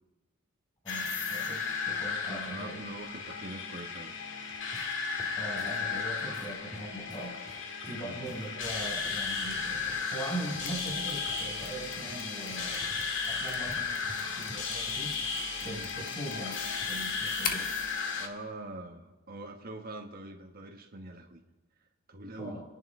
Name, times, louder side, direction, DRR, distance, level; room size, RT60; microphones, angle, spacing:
voice 1, 0.8-2.8 5.4-7.4 7.9-12.9 13.2-15.1 15.6-17.7 22.4-22.6, right 1 dB, 20° left, 0 dB, 5.5 m, -41 dB
sound 1, 0.9-18.3, left 5 dB, 65° left, 2.1 m, -35 dB
voice 2, 2.2-4.1 8.0-8.3 15.6-15.9 18.1-21.4 22.1-22.6, right 2 dB, 45° right, 3 dB, 1.3 m, -43 dB
sound 2, 4.2-17.1 17.3-17.5 18.2-18.5, equal, 5° right, 1.7 m, -53 dB
Mechanisms, 10.7-17.8, left 6 dB, 45° left, 1.6 m, -43 dB
28.5 x 11.0 x 3.7 m, 1.2 s
head